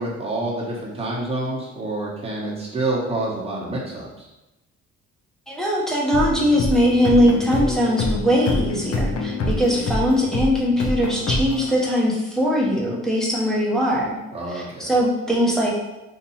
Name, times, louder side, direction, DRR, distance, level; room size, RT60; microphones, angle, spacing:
voice 1, 0.0-4.3 14.3-15.0, right 2 dB, 20° right, -5 dB, 1.0 m, -28 dB
voice 2, 5.5-14.2 14.5-15.7, equal, ahead, -4 dB, 1.0 m, -20 dB
sound 1, 6.1-11.7, left 2 dB, 55° left, 0.6 m, -26 dB
2.7 x 2.6 x 4.1 m, 0.99 s
cardioid pair, 90°, 30 cm